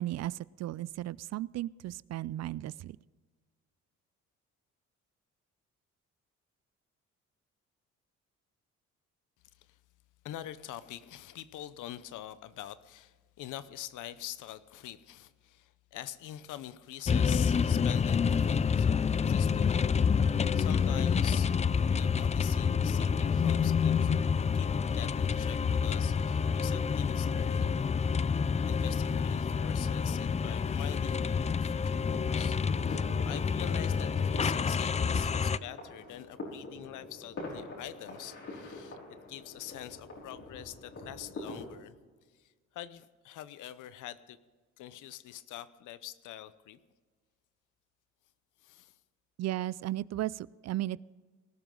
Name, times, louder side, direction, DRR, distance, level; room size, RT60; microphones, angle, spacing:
voice 1, 0.0-3.0 49.4-51.0, right 14 dB, 60° right, 21 dB, 0.4 m, -35 dB
voice 2, 10.2-19.8 20.5-21.5 21.9-24.1 24.5-24.7 24.9-27.8 28.7-39.0 39.3-41.9 42.3-44.4 44.8-46.8 48.6-49.0, left 12 dB, 85° left, 15 dB, 0.8 m, -45 dB
sound 1, 17.1-35.6, left 6 dB, 25° left, 0.4 m, -28 dB
sound 2, 32.5-41.7, left 2 dB, 55° left, 5.8 m, -45 dB
19.5 x 12.5 x 3.9 m, 1.4 s
cardioid pair, 90°, 30 cm